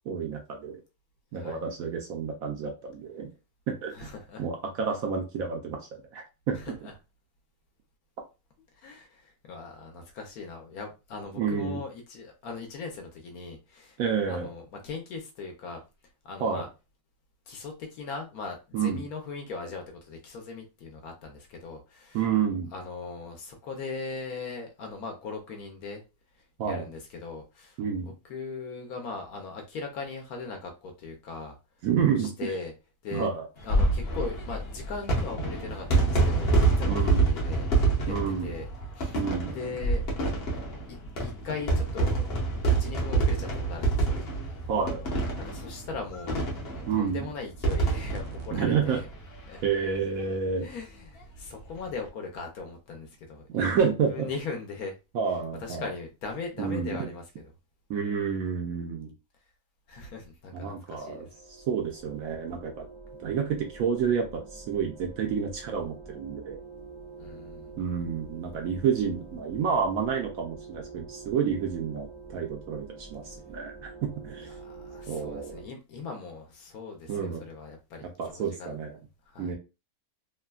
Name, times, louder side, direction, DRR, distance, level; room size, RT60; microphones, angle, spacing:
voice 1, 0.1-0.8 1.3-3.3 3.7-4.1 4.4-6.7 11.3-11.8 14.0-14.5 16.4-16.6 18.7-19.0 22.1-22.7 26.6-26.9 27.8-28.1 31.8-32.5 33.1-33.5 36.9-37.2 38.1-38.6 39.1-39.6 44.7-45.0 46.9-47.3 48.5-49.0 49.6-50.7 53.5-54.3 55.1-55.8 56.6-57.0 57.9-59.1 60.5-61.3 61.7-62.9 63.2-66.6 67.8-74.5 75.1-75.6 77.1-77.4 78.0-79.0 79.4-79.5, right 6 dB, 70° right, 0.9 m, -29 dB
voice 2, 3.9-4.4 6.5-6.9 8.7-14.0 14.3-15.8 16.2-16.7 17.5-22.2 22.7-26.0 26.4-31.5 32.2-32.7 33.0-33.3 33.6-37.7 38.0-38.7 38.9-39.2 39.5-40.1 40.9-41.0 41.2-42.3 42.8-44.2 45.4-49.1 49.5-49.7 50.6-53.6 54.1-54.9 55.6-57.5 59.9-61.2 67.2-67.7 74.4-78.8 79.3-79.5, left 4 dB, 70° left, 1.1 m, -39 dB
sound 1, 33.6-49.6 49.9-50.0 50.2-50.3 51.6-51.8, right 3 dB, 45° left, 0.9 m, -27 dB
sound 2, 47.7-48.5, right 2 dB, 85° right, 1.3 m, -42 dB
sound 3, 60.8-75.7, right 3 dB, 30° right, 0.5 m, -46 dB
3.3 x 2.1 x 2.2 m
omnidirectional pair, 1.8 m